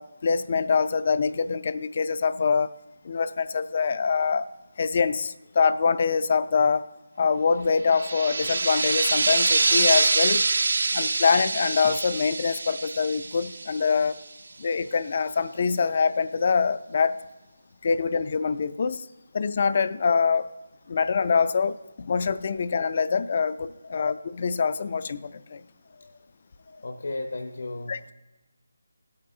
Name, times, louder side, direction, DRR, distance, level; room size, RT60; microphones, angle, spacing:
voice 1, 0.0-2.7 3.0-4.5 4.8-6.9 7.2-10.4 10.9-14.2 14.6-17.2 17.8-19.0 19.3-20.5 20.9-25.6 27.9-28.1, left 5 dB, 35° left, 14 dB, 0.3 m, -24 dB
sound 1, 7.9-14.2, right 3 dB, 60° right, 0.5 m, -25 dB
voice 2, 25.8-26.3 26.6-28.0, left 2 dB, 70° left, 4 dB, 0.8 m, -38 dB
16.0 x 8.6 x 2.7 m, 1.1 s
figure-of-eight pair, 170°, 0 cm